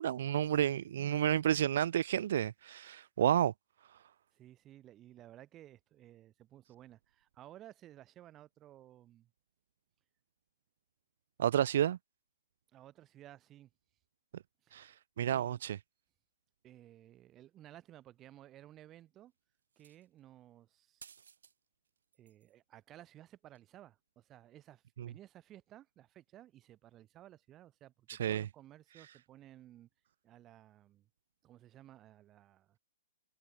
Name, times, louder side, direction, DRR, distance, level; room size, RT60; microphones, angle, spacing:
voice 1, 0.0-3.5 11.4-12.0 14.7-15.8 25.0-25.1 28.1-28.4, right 10 dB, 50° right, 0.5 m, -31 dB
voice 2, 4.3-9.3 12.7-13.7 14.6-14.9 15.3-15.6 16.6-19.3 19.8-21.0 22.2-29.9 30.2-31.1 31.4-32.8, right 13 dB, 15° right, 2.0 m, -56 dB
sound 1, 19.7-20.2 21.0-21.6 21.9-22.5 23.6-23.7, right 7 dB, 85° right, 1.9 m, -58 dB
hypercardioid pair, 170°, 0 cm